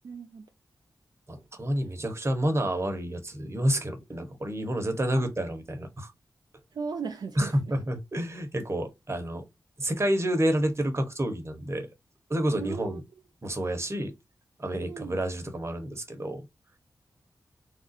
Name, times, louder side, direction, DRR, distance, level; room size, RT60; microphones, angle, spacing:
voice 1, 0.0-0.5 5.2-5.3 6.7-7.7 12.5-13.0 14.9-15.2, right 5 dB, 65° right, 0.4 m, -36 dB
voice 2, 1.3-6.1 7.4-9.4 9.8-11.9 12.3-13.0 13.4-14.1 14.6-16.5, right 1 dB, 35° right, 0.9 m, -29 dB
3.4 x 2.4 x 2.6 m
cardioid pair, 55°, 8 cm